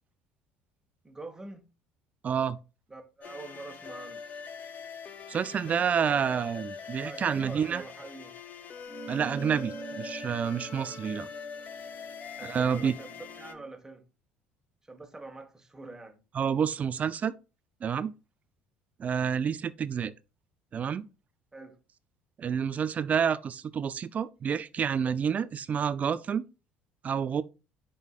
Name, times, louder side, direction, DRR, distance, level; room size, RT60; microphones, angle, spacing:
voice 1, 1.0-1.7 2.9-4.2 7.0-8.4 12.4-14.0 14.8-16.2 21.5-21.8, right 2 dB, 15° right, 1.6 m, -44 dB
voice 2, 2.2-2.6 5.3-7.8 9.1-11.3 12.4-12.9 16.3-17.3 17.8-18.1 19.0-20.1 20.7-21.1 22.4-26.5 27.0-27.4, right 7 dB, 40° right, 0.5 m, -29 dB
sound 1, 3.2-13.5, left 6 dB, 45° left, 0.8 m, -43 dB
sound 2, 8.9-13.7, right 4 dB, 20° left, 1.9 m, -44 dB
10.5 x 3.9 x 2.4 m
hypercardioid pair, 75°, 4 cm